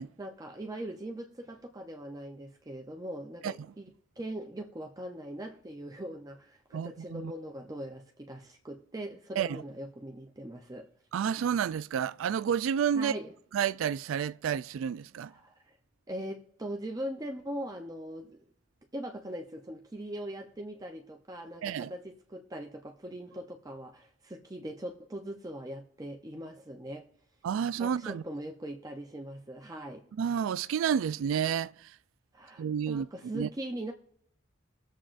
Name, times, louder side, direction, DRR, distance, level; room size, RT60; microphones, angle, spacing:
voice 1, 0.0-10.9 12.9-13.3 15.3-15.8 16.1-18.5 18.9-27.1 27.8-30.0 32.3-33.9, right 1 dB, 20° right, 0.6 m, -41 dB
voice 2, 6.7-7.3 9.4-9.6 11.1-13.1 13.5-15.3 21.6-21.9 27.4-28.2 30.2-31.9 32.6-33.1 33.3-33.5, right 8 dB, 85° right, 0.3 m, -30 dB
21.5 x 7.4 x 2.5 m
head